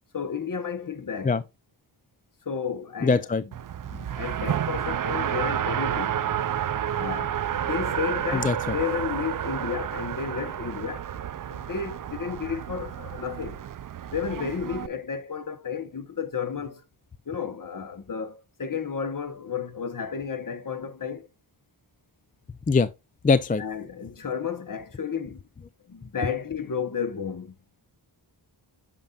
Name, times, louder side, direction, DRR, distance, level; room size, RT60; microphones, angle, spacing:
voice 1, 0.1-1.3 2.4-3.3 3.9-6.2 7.0-11.1 11.5-13.6 14.1-16.8 17.3-21.3 23.6-25.4 25.9-27.5, left 6 dB, 45° left, 1.0 m, -32 dB
voice 2, 3.0-3.4 8.3-8.7 22.7-22.9 23.2-23.6, left 4 dB, 20° left, 0.4 m, -22 dB
Race car auto racing, 3.5-14.9, right 10 dB, 50° right, 0.4 m, -30 dB
8.8 x 5.7 x 2.4 m
wide cardioid pair, 95°, 45 cm